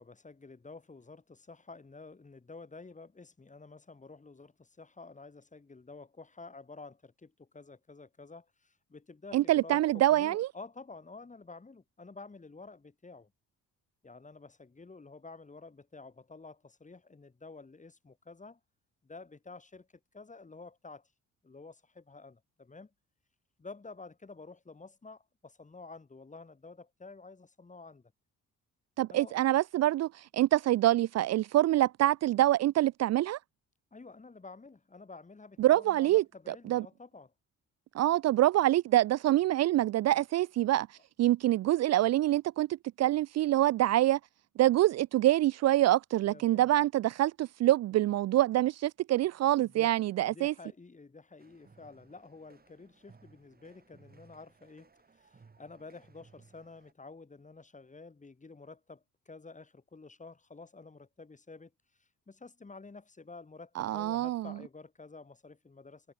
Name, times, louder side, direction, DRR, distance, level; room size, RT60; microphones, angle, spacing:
voice 1, 0.0-13.3 14.0-18.6 19.0-19.9 20.1-21.1 21.4-22.9 23.6-28.1 29.1-29.3 33.9-37.3 46.3-46.7 49.6-50.0 50.3-61.7 62.0-66.1, left 3 dB, 25° left, 7.0 m, -50 dB
voice 2, 9.3-10.5 29.0-33.4 35.6-36.9 37.9-40.9 41.2-42.7 43.0-44.2 44.6-50.5 63.8-64.5, right 14 dB, 60° right, 0.4 m, -26 dB
sound 1, 51.4-56.9, right 4 dB, 30° right, 4.5 m, -61 dB
cardioid pair, 90°, 30 cm